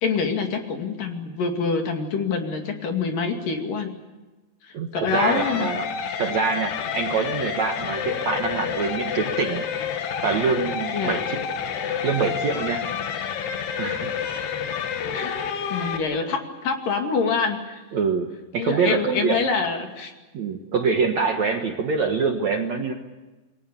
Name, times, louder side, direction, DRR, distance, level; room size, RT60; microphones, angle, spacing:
voice 1, 0.0-3.9 4.6-5.7 10.9-11.2 15.1-15.4 15.7-17.8 18.6-20.1, left 5 dB, 55° left, 4 dB, 3.8 m, -26 dB
voice 2, 4.7-5.9 6.2-9.6 10.2-11.5 12.0-12.9 13.8-14.1 17.9-18.3 18.5-19.5 20.3-22.9, right 5 dB, 60° right, 4 dB, 2.1 m, -25 dB
sound 1, 5.1-16.0, left 7 dB, 70° left, 3.6 m, -29 dB
28.5 x 21.5 x 7.0 m, 1.2 s
omnidirectional pair, 5.0 m